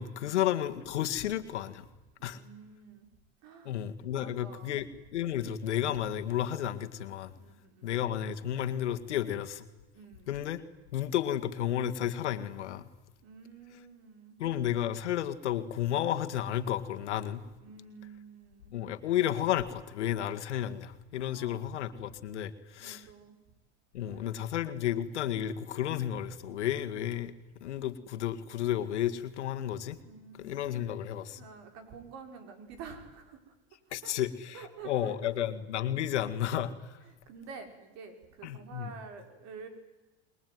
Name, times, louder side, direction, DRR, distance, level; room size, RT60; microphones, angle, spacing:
voice 1, 0.0-1.9 2.2-2.4 3.6-7.3 7.8-9.7 10.3-10.6 10.9-12.9 14.4-17.4 18.7-23.1 23.9-27.3 27.6-30.0 30.4-31.5 33.9-37.0 38.4-38.9, left 11 dB, 90° left, 9 dB, 2.0 m, -32 dB
voice 2, 2.2-3.1 3.4-3.8 4.1-4.8 7.3-7.9 9.9-10.3 13.2-14.4 17.6-18.7 21.2-21.9 22.8-23.4 24.0-24.2 30.0-30.6 31.4-33.5 34.0-34.1 34.5-35.3 35.9-36.2 37.3-39.7, right 5 dB, 50° right, 6 dB, 5.6 m, -49 dB
28.5 x 21.5 x 9.5 m, 1.1 s
supercardioid pair, 120°, 34 cm